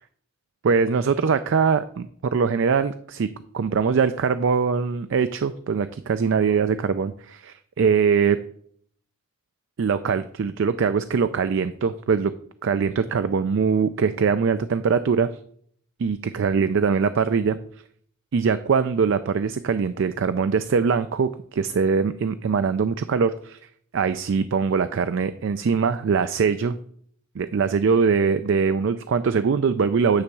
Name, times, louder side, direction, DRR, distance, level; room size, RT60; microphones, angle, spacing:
voice 1, 0.6-8.4 9.8-12.3 12.6-15.3 16.0-17.6 18.3-23.6 23.9-26.8 27.4-30.2, right 5 dB, 60° right, 11 dB, 0.4 m, -22 dB
9.8 x 3.5 x 6.8 m, 0.62 s
head